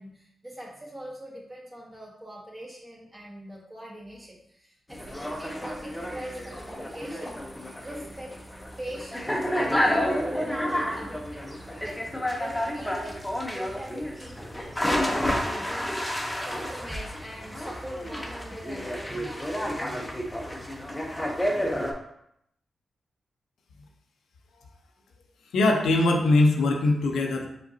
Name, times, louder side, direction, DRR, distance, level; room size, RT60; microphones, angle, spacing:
voice 1, 0.0-7.4 7.8-8.3 8.8-12.0 12.4-13.2 13.5-14.4 14.8-15.9 16.4-20.2 20.5-20.7, equal, 25° right, -3 dB, 1.6 m, -42 dB
sound 1, 4.9-21.9, equal, 10° left, 0.8 m, -30 dB
voice 2, 25.5-27.5, left 2 dB, 90° left, 2 dB, 0.6 m, -21 dB
5.0 x 3.9 x 2.7 m, 0.75 s
cardioid pair, 70°, 0 cm